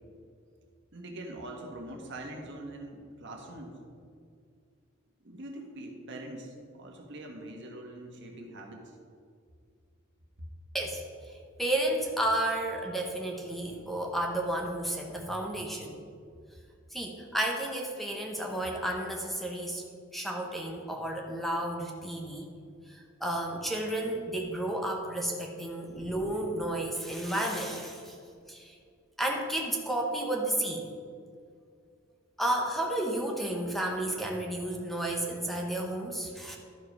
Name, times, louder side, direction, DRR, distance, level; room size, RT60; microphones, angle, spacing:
voice 1, 0.9-3.7 5.2-8.9 10.4-10.5, right 1 dB, 65° right, 2 dB, 1.4 m, -43 dB
voice 2, 11.6-15.9 16.9-19.8 20.1-22.4 22.9-28.2 28.5-28.7 29.2-30.9 32.4-36.6, right 1 dB, ahead, 1 dB, 0.9 m, -32 dB
12.0 x 5.1 x 5.4 m, 2.2 s
head